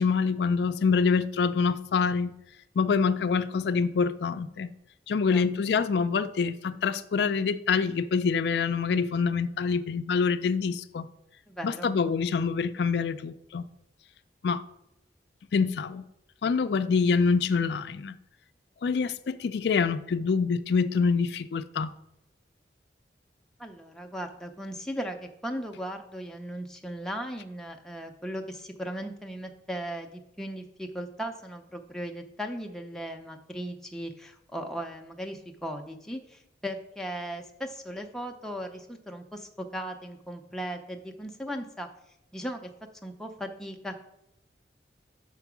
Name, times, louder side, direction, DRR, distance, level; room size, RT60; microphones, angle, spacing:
voice 1, 0.0-2.3 2.8-4.7 5.1-11.1 11.6-13.6 14.4-14.6 15.5-16.0 16.4-18.2 18.8-21.9, left 5 dB, 70° left, 0.4 m, -26 dB
voice 2, 11.5-11.9 23.6-25.2 25.4-41.9 42.3-42.7 43.0-44.0, equal, 5° left, 0.5 m, -37 dB
5.8 x 4.6 x 6.0 m
head